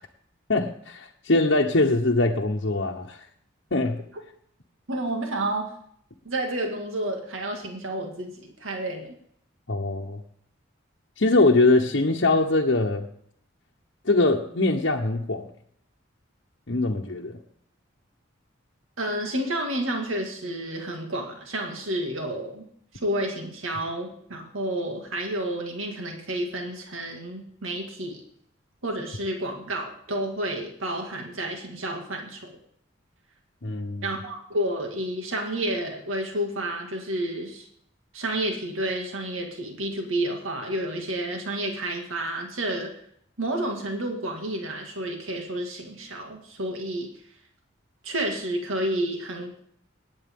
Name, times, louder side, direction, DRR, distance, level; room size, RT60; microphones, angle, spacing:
voice 1, 0.5-3.2 3.7-4.0 9.7-10.2 11.2-13.1 14.0-15.5 16.7-17.4 33.6-34.1, left 2 dB, 60° left, -1 dB, 1.0 m, -22 dB
voice 2, 4.9-5.7 6.2-9.2 19.0-22.7 23.0-28.2 28.8-32.6 34.0-37.7 38.1-42.9 43.4-47.1 48.0-49.6, right 1 dB, 80° right, 2 dB, 2.1 m, -30 dB
19.0 x 8.7 x 3.7 m, 0.66 s
head